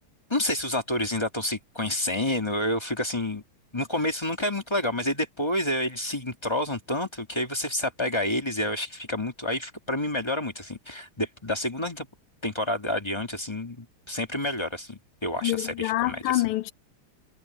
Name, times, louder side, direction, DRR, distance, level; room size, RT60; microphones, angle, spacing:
voice 1, 0.3-3.4 3.7-12.1 12.4-16.4, left 1 dB, 15° left, 1.8 m, -29 dB
voice 2, 15.4-16.7, left 16 dB, 85° left, 1.6 m, -26 dB
omnidirectional pair, 2.4 m